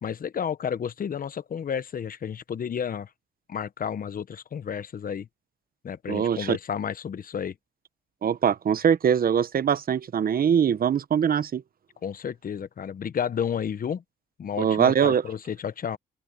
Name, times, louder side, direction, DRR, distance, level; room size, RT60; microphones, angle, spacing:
voice 1, 0.0-3.1 3.5-5.3 5.8-7.5 12.0-14.0 14.4-16.0, left 8 dB, 45° left, 1.1 m, -31 dB
voice 2, 6.1-6.6 8.2-11.6 14.6-15.2, right 8 dB, 50° right, 1.1 m, -22 dB
open air
cardioid pair, 90°, 20 cm